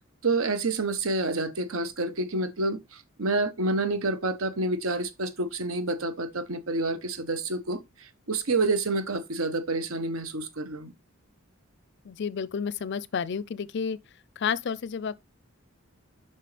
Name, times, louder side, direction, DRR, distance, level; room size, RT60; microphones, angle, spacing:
voice 1, 0.2-2.8 3.2-7.8 8.3-10.9, right 2 dB, 80° right, 1.1 m, -28 dB
voice 2, 12.0-14.0 14.4-15.2, left 6 dB, 55° left, 0.4 m, -30 dB
7.6 x 5.5 x 3.3 m
head